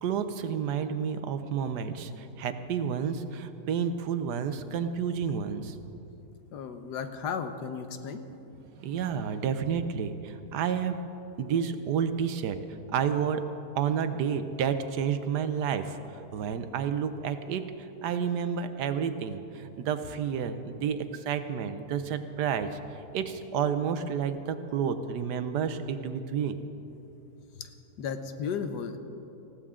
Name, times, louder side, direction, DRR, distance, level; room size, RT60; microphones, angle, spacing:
voice 1, 0.0-5.8 8.7-11.0 11.4-13.4 13.7-26.6, right 7 dB, 85° right, 10 dB, 1.4 m, -30 dB
voice 2, 6.5-8.2 27.5-27.7 28.0-29.0, left 6 dB, 90° left, 8 dB, 1.5 m, -34 dB
19.5 x 16.0 x 3.7 m, 3.0 s
omnidirectional pair, 1.7 m